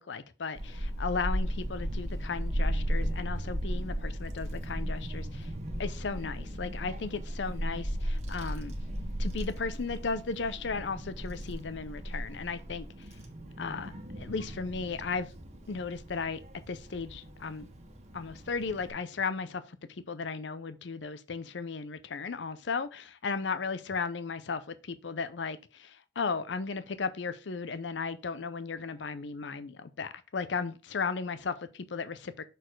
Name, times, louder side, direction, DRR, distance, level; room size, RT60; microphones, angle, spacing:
voice 1, 0.0-5.5 5.8-8.7 9.2-13.2 13.6-15.3 15.7-17.7 18.1-32.4, left 4 dB, 70° left, 0.6 m, -35 dB
Child speech kid speaking / Wind, 0.5-18.9, equal, 35° right, 1.5 m, -36 dB
6.7 x 4.1 x 4.5 m
head